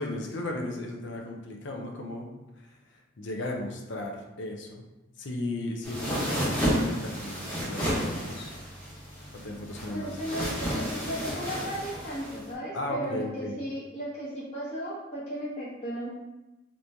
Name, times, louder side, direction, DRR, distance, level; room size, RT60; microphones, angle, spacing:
voice 1, 0.0-4.8 5.2-8.5 9.4-10.5 12.7-13.5, left 1 dB, 60° left, 1 dB, 0.5 m, -36 dB
sound 1, 5.8-12.5, equal, 10° left, 1.0 m, -31 dB
voice 2, 9.9-16.1, equal, 30° left, -10 dB, 1.0 m, -35 dB
3.0 x 2.6 x 3.4 m, 1.0 s
head